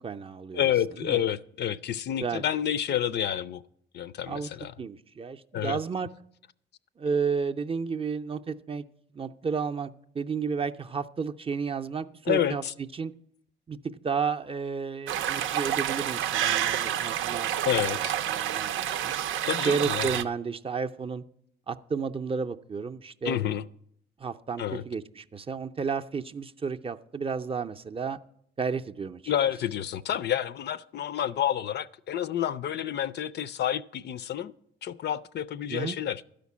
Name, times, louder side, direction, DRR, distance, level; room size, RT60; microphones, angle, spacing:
voice 1, 0.0-0.7 1.0-1.2 2.2-2.4 4.3-4.5 4.8-6.1 7.0-8.8 9.1-12.6 12.9-13.1 13.7-13.8 14.0-17.5 17.9-19.1 19.6-21.2 21.7-23.4 24.2-28.2 28.6-29.3 35.7-36.0, right 5 dB, 30° right, 0.5 m, -32 dB
voice 2, 0.5-3.6 3.9-4.7 5.5-5.8 12.3-12.7 17.7-18.2 19.5-20.1 23.2-23.6 24.6-24.8 29.3-34.5 34.8-36.2, left 10 dB, 60° left, 0.4 m, -29 dB
sound 1, 15.1-20.2, right 11 dB, 85° right, 0.6 m, -29 dB
12.0 x 5.1 x 8.3 m
cardioid pair, 90°, 20 cm